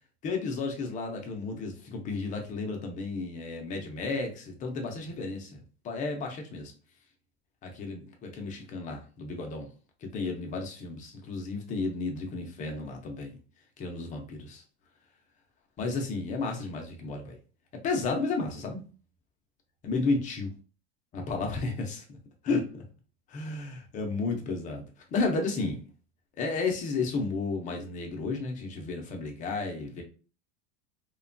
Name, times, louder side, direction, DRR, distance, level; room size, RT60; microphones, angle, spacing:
voice 1, 0.2-6.7 7.6-9.7 10.0-13.4 13.8-14.6 15.8-17.4 17.8-18.8 19.8-20.5 21.1-22.2 22.4-22.8 23.3-24.8 25.1-25.8 26.4-30.0, left 3 dB, 25° left, 0.4 m, -32 dB
2.9 x 2.1 x 2.5 m
supercardioid pair, 160°, 32 cm